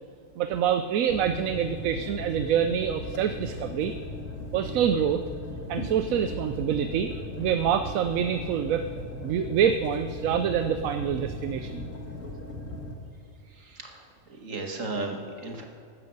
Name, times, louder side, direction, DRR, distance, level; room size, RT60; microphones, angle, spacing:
voice 1, 0.4-3.9 4.5-5.2 5.7-7.1 7.4-8.8 9.2-11.9, right 8 dB, 85° right, 9 dB, 1.1 m, -26 dB
sound 1, 1.1-12.9, left 2 dB, 75° left, 2.1 m, -38 dB
voice 2, 13.6-14.0 14.3-15.6, right 3 dB, 70° right, 3 dB, 2.3 m, -35 dB
13.0 x 10.5 x 8.0 m, 2.5 s
omnidirectional pair, 1.4 m